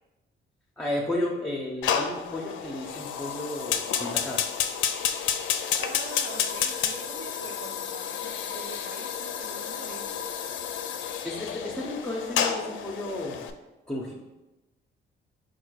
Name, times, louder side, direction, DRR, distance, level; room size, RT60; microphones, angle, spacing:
voice 1, 0.8-4.4 11.2-13.5 13.9-14.1, left 1 dB, 5° left, -4 dB, 0.6 m, -33 dB
Fire, 1.8-13.5, left 8 dB, 75° left, 0.4 m, -30 dB
voice 2, 5.8-10.2, right 4 dB, 70° right, 1 dB, 0.5 m, -44 dB
4.3 x 2.3 x 4.7 m, 1.1 s
cardioid pair, 90°, 20 cm